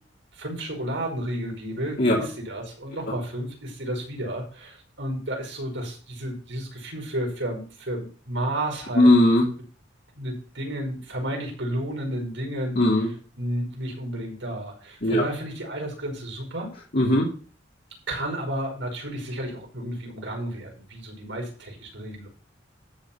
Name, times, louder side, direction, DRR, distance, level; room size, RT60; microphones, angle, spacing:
voice 1, 0.3-9.3 10.2-13.1 13.4-16.7 18.1-22.3, right 1 dB, 90° right, 1 dB, 5.4 m, -32 dB
voice 2, 8.9-9.5 12.8-13.1 15.0-15.2 16.9-17.3, left 1 dB, 50° left, -3 dB, 2.7 m, -18 dB
13.0 x 4.6 x 7.2 m, 0.41 s
head